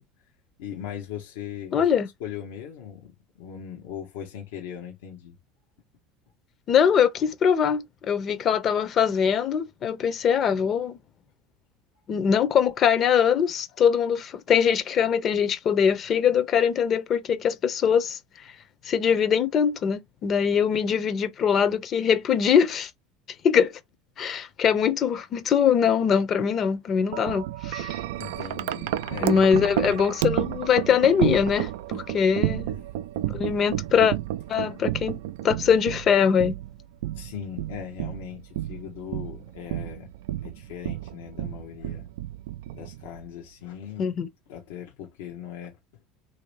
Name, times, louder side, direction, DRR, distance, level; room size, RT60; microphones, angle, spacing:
voice 1, 0.6-1.9 2.2-5.4 13.7-13.8 28.2-29.4 32.7-32.8 37.1-40.1 40.4-42.1 42.7-44.2 44.5-45.8, left 9 dB, 80° left, 0.9 m, -39 dB
voice 2, 1.7-2.1 6.7-11.0 12.1-18.2 18.8-22.9 23.4-23.7 24.2-28.0 29.2-32.7 33.3-34.1 34.5-35.2 35.4-36.6 44.0-44.3, left 7 dB, 45° left, 0.7 m, -22 dB
Wind chime, 27.1-43.3, right 13 dB, 80° right, 0.3 m, -31 dB
3.1 x 2.8 x 3.1 m
hypercardioid pair, 95°, 0 cm